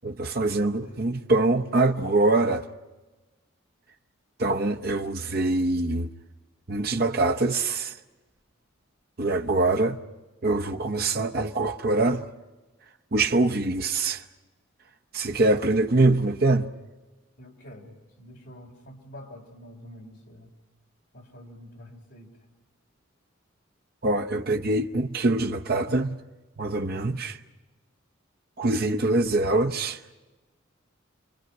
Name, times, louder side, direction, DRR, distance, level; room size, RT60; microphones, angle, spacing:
voice 1, 0.0-2.7 4.4-6.1 6.7-7.9 9.2-10.0 10.4-12.3 13.1-14.2 15.1-16.7 24.0-26.2 26.6-27.4 28.6-30.0, right 2 dB, 50° right, 0.8 m, -24 dB
voice 2, 0.7-1.1 17.4-20.5 21.1-22.4, equal, 55° left, 4.1 m, -47 dB
28.5 x 23.0 x 5.4 m
head